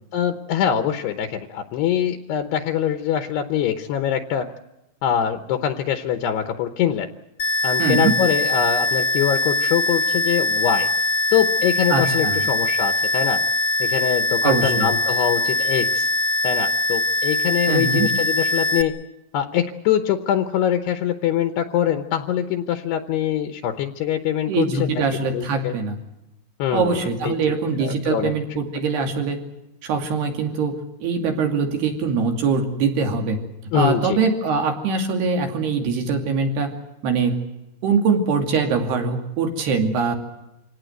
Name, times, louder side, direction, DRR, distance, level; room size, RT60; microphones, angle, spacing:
voice 1, 0.1-4.5 5.0-7.1 7.6-10.9 11.3-13.4 13.8-16.1 16.4-18.9 19.3-25.0 25.3-25.7 26.6-27.3 27.8-28.3 33.7-34.2, left 10 dB, 75° left, 8 dB, 2.9 m, -23 dB
sound 1, 7.4-18.8, left 1 dB, 50° left, 1.9 m, -22 dB
voice 2, 7.8-8.2 11.9-12.4 14.4-14.9 17.7-18.1 24.5-26.0 26.7-29.4 29.8-33.4 33.7-36.7 37.0-37.4 37.8-40.1, right 5 dB, 65° right, 4 dB, 4.5 m, -22 dB
26.0 x 18.0 x 8.0 m, 0.92 s
omnidirectional pair, 5.1 m